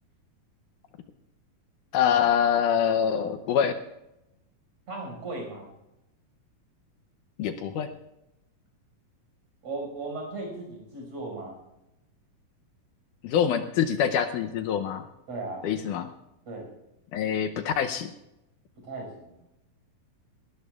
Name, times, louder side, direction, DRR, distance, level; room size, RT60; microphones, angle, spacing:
voice 1, 1.9-3.8 7.4-7.9 13.2-15.0 15.6-16.1 17.1-18.1, left 8 dB, 75° left, 8 dB, 2.2 m, -25 dB
voice 2, 4.9-5.7 9.6-11.6 15.3-15.6 16.5-16.7 18.8-19.4, right 2 dB, 50° right, 0 dB, 6.8 m, -36 dB
19.5 x 19.0 x 2.4 m, 0.90 s
omnidirectional pair, 3.9 m